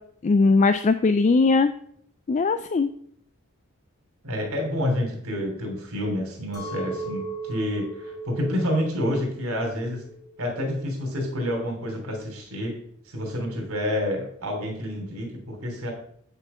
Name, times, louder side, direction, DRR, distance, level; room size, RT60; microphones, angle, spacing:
voice 1, 0.2-1.7 2.3-2.9, left 3 dB, 30° left, 11 dB, 0.3 m, -19 dB
voice 2, 4.2-10.0 10.4-12.7 13.1-15.9, left 1 dB, 80° right, 1 dB, 3.1 m, -28 dB
Chink clink, 6.5-11.7, right 3 dB, 15° left, 2.3 m, -38 dB
8.4 x 7.0 x 5.5 m, 0.66 s
head